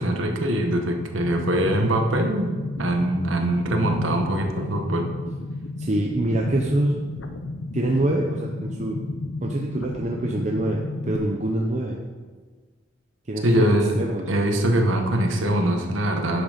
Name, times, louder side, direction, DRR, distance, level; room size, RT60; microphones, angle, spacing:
voice 1, 0.0-2.5 2.8-5.1 13.4-14.0 14.3-16.4, right 1 dB, 80° right, 3 dB, 1.3 m, -22 dB
sound 1, 1.2-11.2, left 2 dB, 80° left, 0.8 m, -33 dB
voice 2, 5.8-7.0 7.7-9.0 9.4-12.0 13.3-14.3, right 1 dB, 35° right, 0 dB, 0.7 m, -25 dB
9.7 x 6.4 x 5.1 m, 1.4 s
head